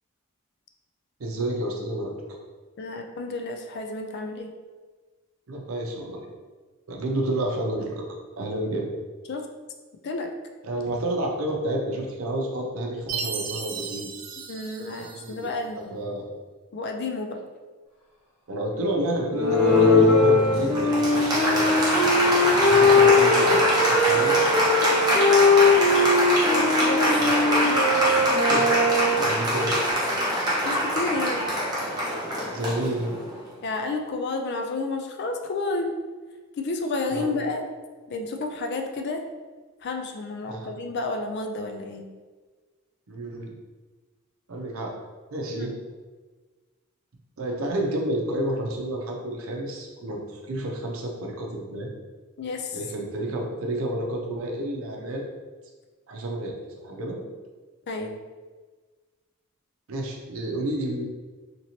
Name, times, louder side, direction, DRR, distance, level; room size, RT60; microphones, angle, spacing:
voice 1, 1.2-2.4 5.5-6.2 6.9-8.1 8.4-8.9 10.6-14.1 14.8-16.3 18.5-21.9 22.7-24.4 28.5-28.7 29.1-29.8 32.5-33.2 37.1-37.3 40.5-40.7 43.1-43.5 44.5-44.9 45.3-45.7 47.4-51.9 52.7-55.2 56.1-56.6 56.8-57.2 59.9-61.0, right 1 dB, 80° right, 0 dB, 0.6 m, -30 dB
voice 2, 2.8-4.5 9.3-9.4 10.0-10.3 14.5-16.0 16.7-17.4 22.4-22.9 26.5-27.2 30.6-31.5 33.6-35.9 36.6-37.6 38.1-39.2 39.8-42.1 45.5-45.8 52.4-52.8 57.9-58.2, left 3 dB, 50° left, 4 dB, 0.4 m, -31 dB
Chime, 13.1-15.5, right 6 dB, 40° right, 0.3 m, -35 dB
Applause, 19.3-33.4, left 1 dB, 20° right, 0.7 m, -23 dB
Wind instrument woodwind instrument, 19.4-29.4, left 2 dB, 15° left, 1.0 m, -21 dB
2.9 x 2.9 x 2.7 m, 1.4 s
head